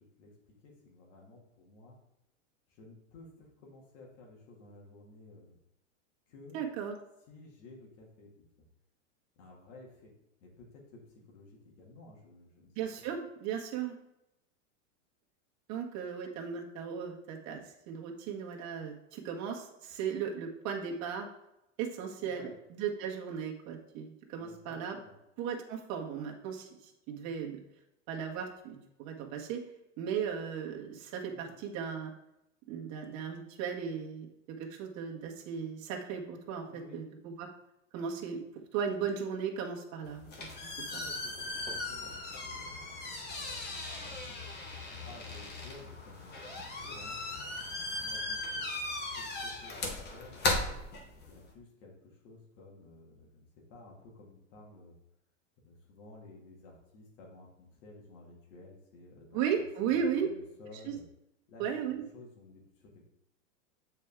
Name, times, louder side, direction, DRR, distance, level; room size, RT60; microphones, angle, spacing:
voice 1, 0.0-2.0 2.7-5.6 6.3-6.6 7.3-8.3 9.4-10.1 10.4-12.7 22.2-22.6 24.4-25.2 31.3-31.5 36.7-37.0 40.8-44.6 44.9-48.7 49.2-50.4 51.1-54.9 55.6-61.0 61.5-61.7 62.1-63.1, left 2 dB, 65° left, -1 dB, 2.4 m, -54 dB
voice 2, 6.5-7.0 12.7-14.0 15.7-21.3 21.8-25.0 25.4-27.6 28.1-29.7 30.0-32.1 32.7-37.5 37.9-38.4 38.7-40.3 40.6-41.0 59.3-60.3 60.8-60.9 61.6-62.0, right 7 dB, 45° right, 1 dB, 1.5 m, -36 dB
sound 1, 40.0-51.5, left 2 dB, 25° left, 1.3 m, -37 dB
7.5 x 4.6 x 3.6 m, 0.85 s
hypercardioid pair, 115°, 39 cm